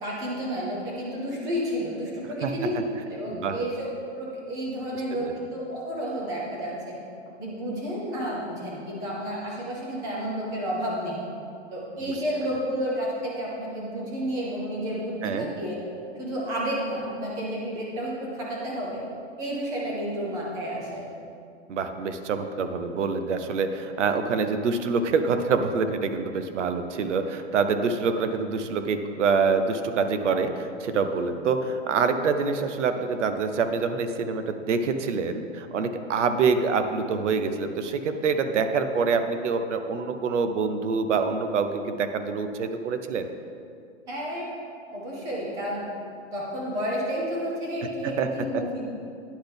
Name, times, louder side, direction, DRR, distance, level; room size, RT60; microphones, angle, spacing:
voice 1, 0.0-3.9 4.2-7.0 7.4-11.2 11.7-15.8 16.1-19.0 19.4-21.1 44.1-44.5 44.9-45.9 46.3-48.9, equal, 10° right, -4 dB, 0.6 m, -31 dB
voice 2, 21.7-43.3 48.0-48.3 48.5-48.6, right 5 dB, 80° right, 8 dB, 0.7 m, -26 dB
10.0 x 3.9 x 3.4 m, 2.4 s
hypercardioid pair, 165°, 36 cm